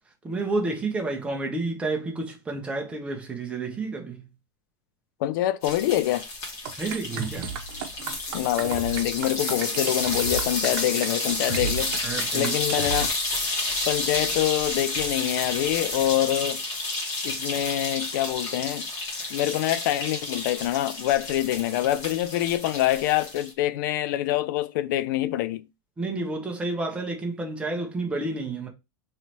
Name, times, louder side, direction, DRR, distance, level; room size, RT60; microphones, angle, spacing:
voice 1, 0.2-4.3 6.8-7.5 11.5-11.6 12.0-12.5 26.0-28.7, right 3 dB, 10° right, 0.8 m, -30 dB
voice 2, 5.2-6.3 8.3-11.9 12.3-13.1 13.9-16.6 17.2-18.9 19.3-25.6, left 14 dB, 60° left, 0.4 m, -25 dB
sound 1, 5.6-23.5, left 2 dB, 25° left, 1.4 m, -31 dB
sound 2, 6.6-13.1, right 6 dB, 65° right, 0.8 m, -34 dB
3.2 x 2.9 x 4.2 m
supercardioid pair, 155°, 12 cm